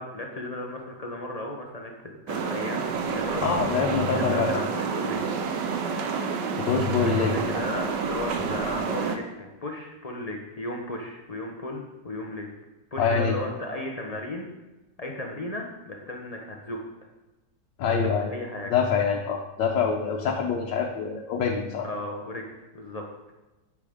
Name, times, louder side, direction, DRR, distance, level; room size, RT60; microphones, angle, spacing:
voice 1, 0.0-3.5 4.0-5.2 7.0-12.5 12.9-14.5 15.0-16.8 17.9-18.7 21.8-23.3, left 1 dB, 60° left, 0 dB, 0.4 m, -35 dB
sound 1, 2.3-9.2, right 5 dB, 80° right, 1.4 m, -29 dB
voice 2, 3.4-4.6 6.6-7.4 13.0-13.4 17.8-18.3 18.7-21.9, left 6 dB, 90° left, 0 dB, 1.5 m, -25 dB
8.5 x 6.3 x 3.5 m, 1.1 s
omnidirectional pair, 1.9 m